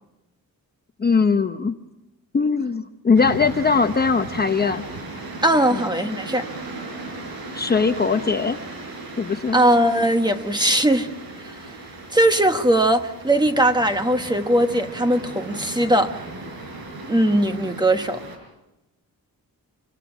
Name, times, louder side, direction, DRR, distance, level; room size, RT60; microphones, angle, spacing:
voice 1, 1.0-1.7 2.3-4.8 5.7-5.8 7.5-8.6 9.2-9.6, left 5 dB, 25° left, 7 dB, 0.8 m, -20 dB
sound 1, 3.2-18.4, right 3 dB, 90° right, 5.3 m, -37 dB
voice 2, 5.4-6.5 9.5-11.1 11.4-11.5 12.1-16.2 17.1-18.2, right 1 dB, 10° right, 7 dB, 1.2 m, -19 dB
26.5 x 25.5 x 6.2 m, 0.97 s
wide cardioid pair, 160°, 35 cm